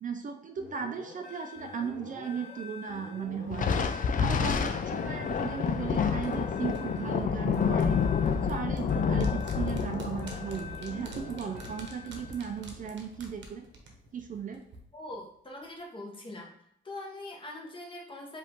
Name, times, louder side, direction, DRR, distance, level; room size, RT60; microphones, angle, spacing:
voice 1, 0.0-8.0 8.4-13.6 14.1-14.6, right 7 dB, 40° right, 5 dB, 0.5 m, -36 dB
sound 1, 0.6-12.7, left 4 dB, 75° left, 1.1 m, -46 dB
Thunder, 3.5-12.3, left 6 dB, 40° left, 0.5 m, -29 dB
sound 2, 5.4-14.8 15.1-15.2, right 3 dB, 65° right, 1.0 m, -48 dB
voice 2, 14.9-16.5 16.8-18.4, left 1 dB, 25° left, -1 dB, 1.3 m, -42 dB
5.1 x 2.7 x 3.6 m, 0.71 s
cardioid pair, 90°, 20 cm